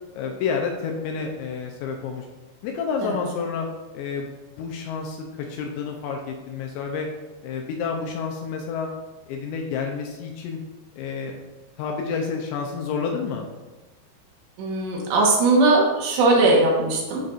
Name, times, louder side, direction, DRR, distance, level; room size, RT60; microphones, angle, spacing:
voice 1, 0.1-2.3 2.6-3.7 3.9-4.3 4.6-7.1 7.4-8.9 9.3-10.6 11.0-11.3 11.8-13.5, left 5 dB, 80° left, 2 dB, 2.7 m, -29 dB
voice 2, 14.6-17.2, right 2 dB, 70° right, -2 dB, 3.3 m, -19 dB
12.0 x 5.2 x 2.5 m, 1.2 s
omnidirectional pair, 5.6 m